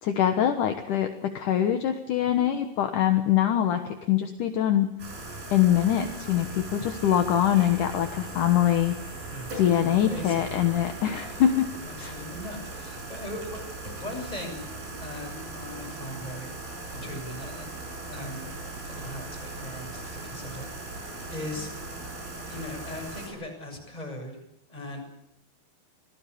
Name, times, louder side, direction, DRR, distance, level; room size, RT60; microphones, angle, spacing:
voice 1, 0.0-4.9 5.5-9.0 9.6-11.7 12.0-12.1, left 10 dB, 65° left, 6 dB, 2.7 m, -24 dB
sound 1, 5.0-23.3, right 2 dB, 75° right, 8.3 m, -39 dB
voice 2, 9.3-10.5 11.8-13.6 13.9-14.7 15.0-16.5 16.9-17.7 18.1-18.5 18.8-21.7 22.4-24.4 24.7-25.0, left 1 dB, 10° left, 1 dB, 7.3 m, -39 dB
26.5 x 18.5 x 8.5 m, 0.81 s
omnidirectional pair, 4.2 m